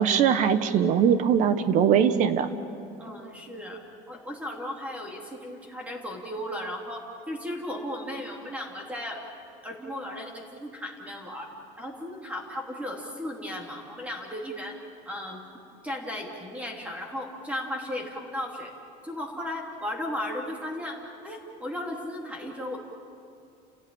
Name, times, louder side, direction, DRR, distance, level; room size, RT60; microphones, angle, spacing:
voice 1, 0.0-2.5, right 8 dB, 45° right, 11 dB, 1.3 m, -21 dB
voice 2, 3.0-3.8 4.1-9.2 9.6-11.5 11.8-14.7 15.0-15.4 15.8-18.7 19.0-22.8, left 1 dB, 10° right, 0 dB, 3.2 m, -35 dB
30.0 x 16.5 x 8.9 m, 2.5 s
cardioid pair, 165°, 17 cm